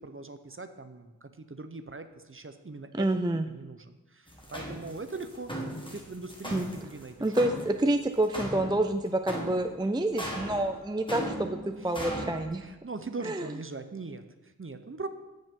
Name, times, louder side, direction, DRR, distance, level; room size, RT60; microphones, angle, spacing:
voice 1, 0.0-3.1 3.5-5.5 5.9-7.4 11.8-12.1 12.6-15.1, right 3 dB, 35° right, 9 dB, 0.7 m, -41 dB
voice 2, 2.9-3.5 6.5-6.7 7.2-11.6 11.8-12.6 13.2-13.5, right 1 dB, 10° right, 7 dB, 0.4 m, -28 dB
sound 1, 4.3-12.5, equal, 15° left, 1.6 m, -38 dB
15.0 x 5.4 x 3.7 m, 1.1 s
wide cardioid pair, 45°, 37 cm